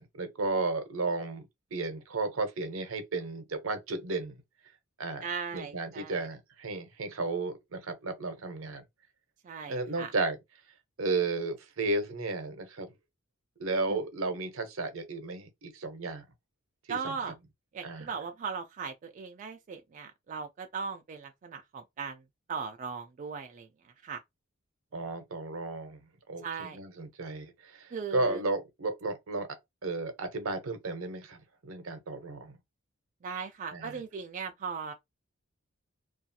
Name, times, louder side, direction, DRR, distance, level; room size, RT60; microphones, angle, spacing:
voice 1, 0.0-4.3 5.0-5.2 5.5-8.8 9.7-10.4 11.0-12.9 13.6-16.3 16.9-17.1 17.8-18.1 24.9-26.0 26.3-29.5 29.8-32.6 33.7-34.0, right 3 dB, 80° right, 0.7 m, -33 dB
voice 2, 5.2-6.3 9.4-10.1 13.9-14.0 16.9-17.3 17.7-22.2 22.5-23.7 24.0-24.2 26.4-26.8 27.9-28.4 33.2-34.9, right 5 dB, 40° right, 0.3 m, -38 dB
2.4 x 2.3 x 2.7 m
head